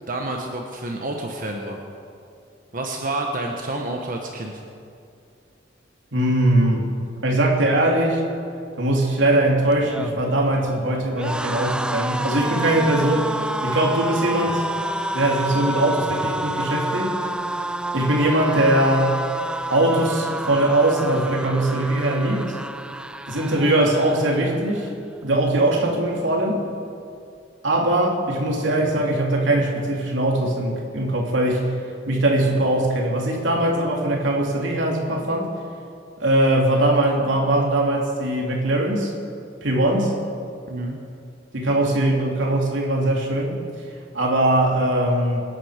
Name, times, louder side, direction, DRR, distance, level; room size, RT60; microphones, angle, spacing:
voice 1, 0.1-1.8 2.7-4.6 40.7-41.0, right 2 dB, 50° right, 2 dB, 1.3 m, -29 dB
voice 2, 6.1-6.9 7.2-8.2 8.8-13.3 13.6-14.6 15.1-17.1 17.9-19.2 19.7-22.6 23.3-24.9 25.2-26.7 27.6-31.7 32.1-35.5 36.2-39.1 39.6-40.2 41.5-43.6 44.1-45.4, right 1 dB, 90° right, -1 dB, 3.0 m, -21 dB
sound 1, 9.7-24.9 25.3-25.5 25.8-26.6, right 1 dB, 5° right, 0.4 m, -29 dB
26.5 x 10.5 x 5.1 m, 2.5 s
head